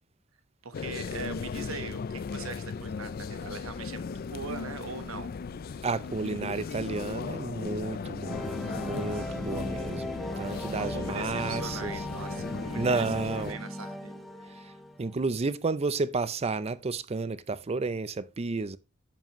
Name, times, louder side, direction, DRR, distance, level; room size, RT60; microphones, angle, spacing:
voice 1, 0.6-5.3 9.1-9.4 10.5-13.2 13.5-14.2, right 4 dB, 80° right, 1.2 m, -41 dB
sound 1, 0.7-13.5, left 5 dB, 45° left, 0.4 m, -37 dB
voice 2, 5.8-10.1 10.4-11.9 12.8-13.6 15.0-18.8, right 3 dB, 30° right, 0.5 m, -31 dB
sound 2, 8.2-15.1, left 1 dB, ahead, 0.9 m, -38 dB
10.5 x 7.5 x 3.0 m
head